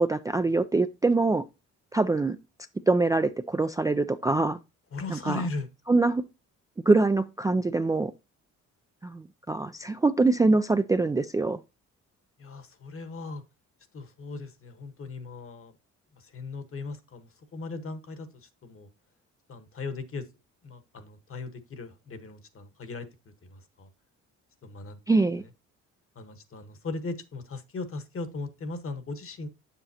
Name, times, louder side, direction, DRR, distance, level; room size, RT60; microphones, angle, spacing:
voice 1, 0.0-1.4 1.9-2.4 2.9-4.6 5.1-5.4 5.9-6.2 6.9-8.1 9.0-11.6 25.1-25.4, right 3 dB, 10° right, 0.3 m, -24 dB
voice 2, 4.9-5.7 12.4-13.4 13.9-15.7 16.2-18.9 19.5-20.3 20.6-23.1 23.4-23.9 24.6-25.0 25.4-25.5 26.1-29.5, left 3 dB, 45° left, 1.3 m, -38 dB
7.5 x 7.1 x 2.8 m
cardioid pair, 90°, 30 cm